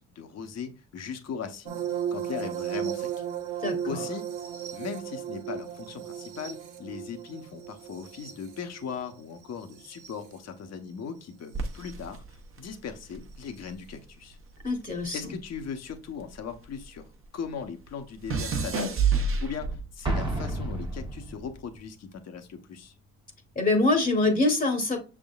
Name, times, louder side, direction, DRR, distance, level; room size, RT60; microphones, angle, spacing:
voice 1, 0.0-1.8 2.1-3.2 3.9-4.3 4.7-12.2 12.6-14.4 15.1-17.1 17.3-18.9 19.4-22.9, left 6 dB, 60° left, 7 dB, 0.9 m, -38 dB
sound 1, 1.7-10.3 11.7-11.9 13.6-13.7, right 9 dB, 85° right, 0.9 m, -35 dB
sound 2, 11.5-14.0 14.3-17.0 17.2-20.0 20.8-21.2, right 5 dB, 45° right, 0.8 m, -30 dB
voice 2, 14.6-15.2 23.6-25.0, left 2 dB, 30° left, 4 dB, 1.0 m, -24 dB
Explosion, 20.0-21.7, right 2 dB, 15° right, 0.8 m, -31 dB
6.1 x 3.6 x 2.3 m, 0.33 s
cardioid pair, 90°, 30 cm